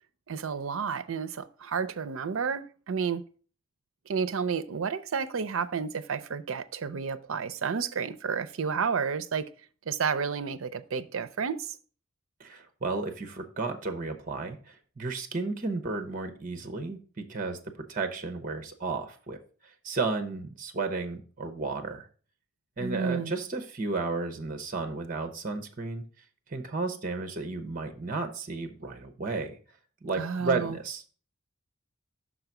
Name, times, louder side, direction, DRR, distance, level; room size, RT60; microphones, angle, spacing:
voice 1, 0.3-3.2 4.1-9.5 9.9-11.8 22.8-23.3 30.1-30.8, right 6 dB, 75° right, 0.5 m, -31 dB
voice 2, 12.4-19.4 19.6-22.1 22.8-26.0 26.5-29.6 30.0-31.1, right 3 dB, 40° right, 0.8 m, -33 dB
6.0 x 3.9 x 5.8 m
head